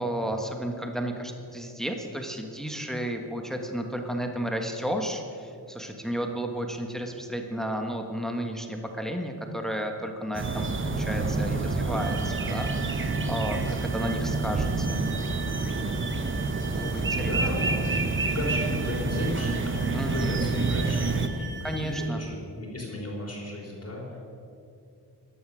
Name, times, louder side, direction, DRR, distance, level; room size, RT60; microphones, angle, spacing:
voice 1, 0.0-15.0 16.7-17.4 19.9-20.4 21.6-22.2, equal, ahead, 4 dB, 1.4 m, -32 dB
sound 1, 10.3-21.3, right 3 dB, 30° right, 1.0 m, -28 dB
sound 2, 12.0-22.1, right 6 dB, 65° right, 1.4 m, -42 dB
voice 2, 16.7-24.2, left 1 dB, 35° left, -3 dB, 3.6 m, -35 dB
14.0 x 11.0 x 6.3 m, 2.5 s
cardioid pair, 90°, 42 cm